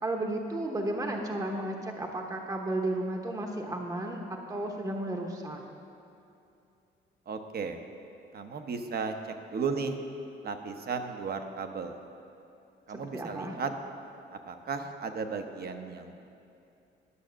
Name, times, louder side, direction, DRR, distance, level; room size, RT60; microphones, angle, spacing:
voice 1, 0.0-5.6 13.1-13.6, right 1 dB, 15° right, 2 dB, 0.9 m, -33 dB
voice 2, 7.3-7.8 8.3-9.1 9.5-10.0 10.4-12.0 12.9-13.7 14.5-16.3, right 5 dB, 50° right, 6 dB, 0.9 m, -35 dB
11.5 x 6.4 x 6.3 m, 2.7 s
cardioid pair, 90°, 20 cm